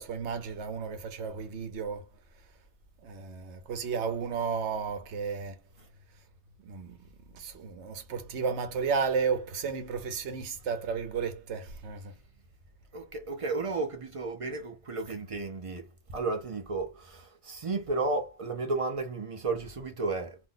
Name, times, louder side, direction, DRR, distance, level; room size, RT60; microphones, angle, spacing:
voice 1, 0.0-2.1 3.0-5.6 6.6-7.0 7.3-12.2, right 5 dB, 75° right, 1.0 m, -33 dB
voice 2, 12.9-20.4, right 3 dB, 40° right, 0.5 m, -33 dB
2.6 x 2.0 x 3.8 m
omnidirectional pair, 1.2 m